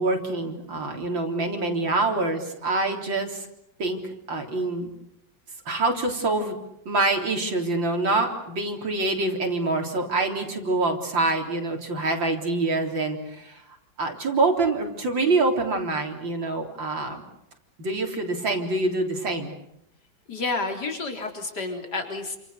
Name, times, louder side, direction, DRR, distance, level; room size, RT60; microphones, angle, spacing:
voice 1, 0.0-3.5 3.8-4.0 4.3-4.9 5.7-6.6 6.9-13.6 14.0-17.2 17.8-19.5, right 2 dB, 80° right, 2 dB, 4.6 m, -25 dB
voice 2, 20.3-22.4, left 3 dB, 60° left, 4 dB, 4.5 m, -30 dB
29.0 x 27.5 x 6.8 m, 0.81 s
omnidirectional pair, 2.0 m